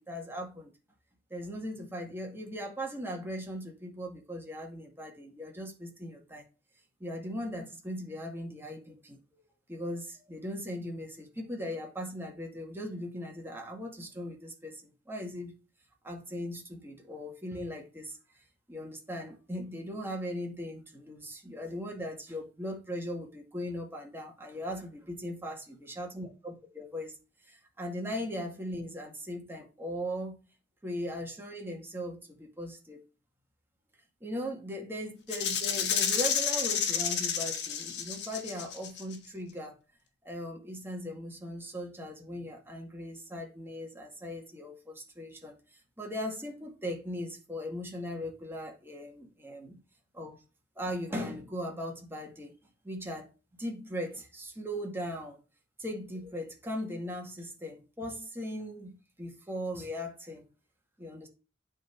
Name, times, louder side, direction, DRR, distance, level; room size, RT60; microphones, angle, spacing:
voice 1, 0.1-0.7 1.3-6.4 7.0-9.2 9.7-15.5 16.0-18.2 18.7-27.1 27.5-30.4 30.8-33.0 34.2-39.8 40.2-45.6 46.0-49.8 50.1-50.4 50.8-52.5 52.8-53.3 53.6-55.4 55.8-60.5 61.0-61.3, equal, 15° right, 2.1 m, -39 dB
Rattle (instrument), 35.3-39.1, left 7 dB, 70° left, 1.6 m, -30 dB
9.2 x 4.1 x 4.6 m
head